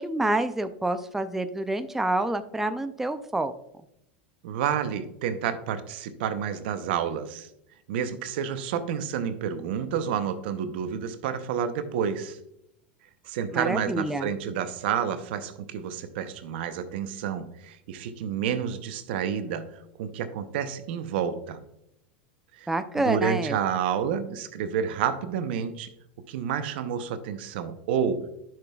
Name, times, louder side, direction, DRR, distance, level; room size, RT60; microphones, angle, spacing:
voice 1, 0.0-3.5 13.5-14.3 22.7-23.6, right 1 dB, 5° right, 9 dB, 0.5 m, -27 dB
voice 2, 4.4-7.5 7.9-12.4 13.2-21.6 22.5-25.9 26.3-28.3, right 8 dB, 70° right, 10 dB, 0.8 m, -29 dB
10.5 x 5.8 x 2.3 m, 0.79 s
hypercardioid pair, 110°, 6 cm